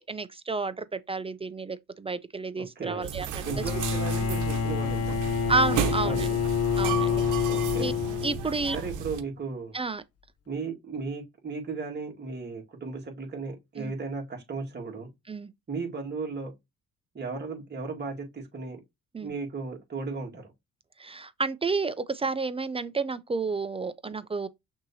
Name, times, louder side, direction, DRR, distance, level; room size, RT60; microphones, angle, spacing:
voice 1, 0.0-3.6 5.5-6.4 6.8-7.2 7.8-7.9 8.2-8.8 9.7-10.0 13.8-13.9 15.3-15.5 19.1-19.3 21.0-24.5, right 3 dB, 20° right, 0.4 m, -30 dB
voice 2, 2.6-3.1 3.4-5.2 5.8-6.4 7.5-8.0 8.7-9.7 10.5-15.1 15.7-16.5 17.1-18.8 19.2-20.5, right 4 dB, 35° right, 1.8 m, -35 dB
sound 1, 3.0-9.2, right 10 dB, 85° right, 0.8 m, -33 dB
Bowed string instrument, 3.4-8.7, left 7 dB, 50° left, 0.7 m, -28 dB
6.0 x 2.8 x 2.7 m
cardioid pair, 90°, 30 cm